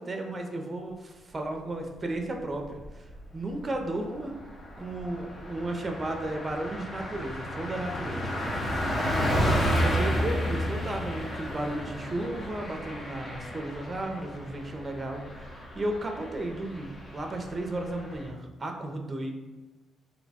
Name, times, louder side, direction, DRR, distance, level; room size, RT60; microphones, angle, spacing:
voice 1, 0.0-4.3 4.8-8.4 9.8-19.3, right 1 dB, 25° right, 3 dB, 0.5 m, -34 dB
Car passing by, 2.6-3.2 3.6-3.7 4.0-18.3, equal, 30° left, 0.7 m, -32 dB
2.7 x 2.1 x 4.0 m, 1.1 s
cardioid pair, 90°, 0 cm